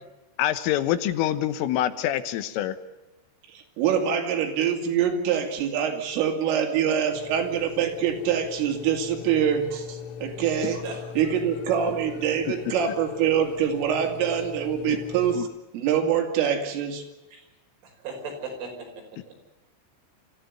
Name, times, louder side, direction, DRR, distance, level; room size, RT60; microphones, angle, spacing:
voice 1, 0.4-2.8 14.9-15.0 15.4-15.5, left 12 dB, 90° left, 12 dB, 3.7 m, -25 dB
voice 2, 3.5-10.8 11.2-15.5 15.7-17.0, right 8 dB, 85° right, 4 dB, 5.2 m, -25 dB
sound 1, 7.1-15.4, left 8 dB, 70° left, 3.4 m, -39 dB
voice 3, 17.8-19.3, right 4 dB, 70° right, 1 dB, 8.0 m, -38 dB
26.0 x 14.5 x 9.6 m, 1.0 s
omnidirectional pair, 5.7 m